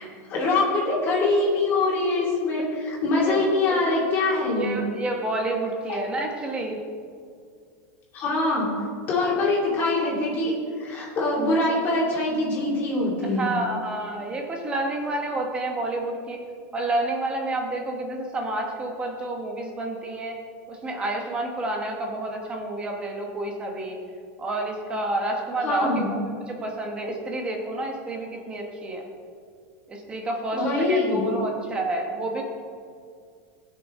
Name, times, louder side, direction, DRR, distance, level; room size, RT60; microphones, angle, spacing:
voice 1, 0.0-4.9 5.9-6.0 8.1-8.7 9.1-13.5 25.6-26.2 30.5-31.3, left 2 dB, 25° left, -4 dB, 2.7 m, -24 dB
voice 2, 4.6-6.8 13.2-16.4 16.7-20.3 20.7-24.0 24.4-29.1 29.9-32.4, right 2 dB, 15° right, 2 dB, 1.1 m, -29 dB
17.0 x 6.4 x 3.8 m, 2.2 s
supercardioid pair, 175°, 8 cm